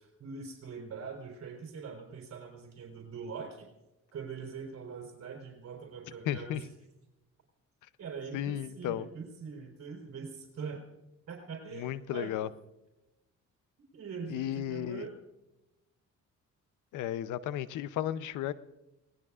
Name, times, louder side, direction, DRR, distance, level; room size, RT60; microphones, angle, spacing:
voice 1, 0.0-3.7 4.1-6.7 8.0-10.8 11.3-12.3 13.9-15.1, right 5 dB, 60° right, 1 dB, 4.1 m, -42 dB
voice 2, 6.2-6.6 8.3-9.1 11.7-12.5 14.3-15.1 16.9-18.5, left 12 dB, 85° left, 15 dB, 0.7 m, -34 dB
27.5 x 19.0 x 2.5 m, 0.96 s
cardioid pair, 90°, 30 cm